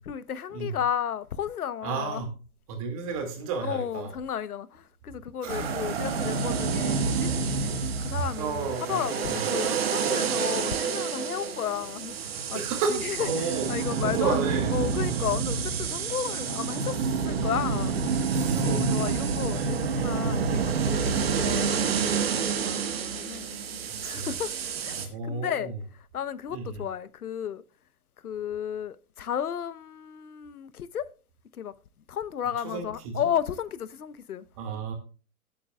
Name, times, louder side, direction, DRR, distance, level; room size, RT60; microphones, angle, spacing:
voice 1, 0.0-2.2 3.6-12.6 12.9-17.0 17.2-23.5 24.0-27.6 28.2-31.1 31.5-31.7 32.1-34.4, left 9 dB, 75° left, 1.0 m, -33 dB
voice 2, 1.8-2.3 2.7-4.1 5.4-5.7 8.1-9.0 9.3-9.4 12.5-13.7 14.0-14.7 18.3-19.2 19.5-19.7 24.0-24.3 25.0-25.7 26.5-26.8 32.6-33.3 34.6-34.9, right 4 dB, 25° right, 2.2 m, -32 dB
sound 1, 5.5-25.1, right 5 dB, 40° right, 1.5 m, -28 dB
17.5 x 8.7 x 2.3 m
hypercardioid pair, 170°, 45 cm